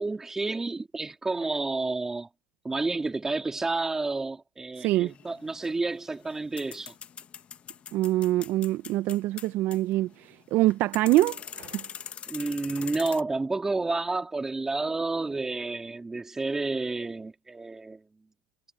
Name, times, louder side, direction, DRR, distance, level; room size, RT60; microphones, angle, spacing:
voice 1, 0.0-2.3 2.6-6.9 12.3-18.0, right 3 dB, 10° right, 3.5 m, -30 dB
voice 2, 4.8-5.1 7.9-11.8, right 16 dB, 50° right, 0.7 m, -25 dB
sound 1, 5.1-13.2, left 8 dB, 30° left, 1.3 m, -43 dB
supercardioid pair, 125°, 4 cm